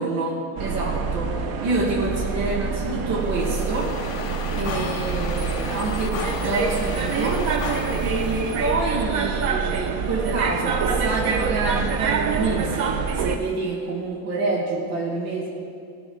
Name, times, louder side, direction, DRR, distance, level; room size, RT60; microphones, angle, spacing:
voice 1, 0.0-1.3 1.6-3.9 4.6-15.5, right 2 dB, 85° right, -5 dB, 2.4 m, -27 dB
sound 1, 0.6-13.4, right 6 dB, 60° right, 1.1 m, -26 dB
sound 2, 3.2-8.9, left 7 dB, 85° left, 0.6 m, -35 dB
19.0 x 6.9 x 6.0 m, 2.4 s
omnidirectional pair, 2.0 m